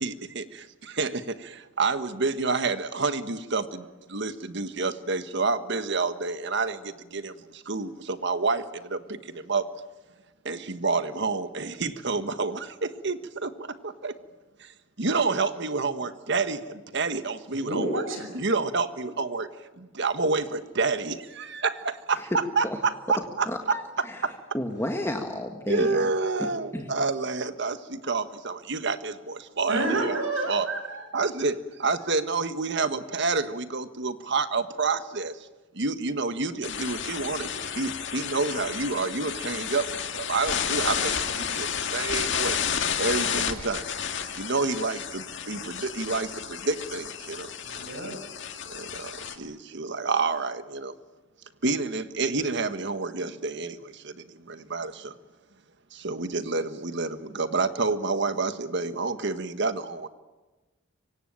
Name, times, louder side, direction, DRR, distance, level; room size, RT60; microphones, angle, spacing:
voice 1, 0.0-1.4 1.8-3.8 4.1-6.8 7.1-7.3 7.7-8.6 8.9-9.2 9.5-9.6 10.4-13.5 13.8-14.1 15.0-18.0 18.3-19.5 19.8-23.8 24.2-24.3 25.7-30.2 30.5-30.7 31.1-35.3 35.8-39.8 40.1-41.7 41.9-42.6 43.0-43.8 44.4-47.5 48.7-50.9 51.6-53.8 54.0-54.1 54.5-55.1 56.0-60.1, right 4 dB, 60° right, 10 dB, 1.5 m, -28 dB
voice 2, 17.5-18.3 29.7-31.0 47.6-48.2, right 2 dB, 85° right, 5 dB, 6.9 m, -29 dB
voice 3, 23.5-23.8 24.1-24.2 24.5-25.9 26.7-26.9, left 1 dB, 15° left, 3 dB, 1.8 m, -31 dB
sound 1, 36.6-49.4, left 7 dB, 65° left, 2.2 m, -31 dB
25.5 x 24.5 x 8.9 m, 1.2 s
head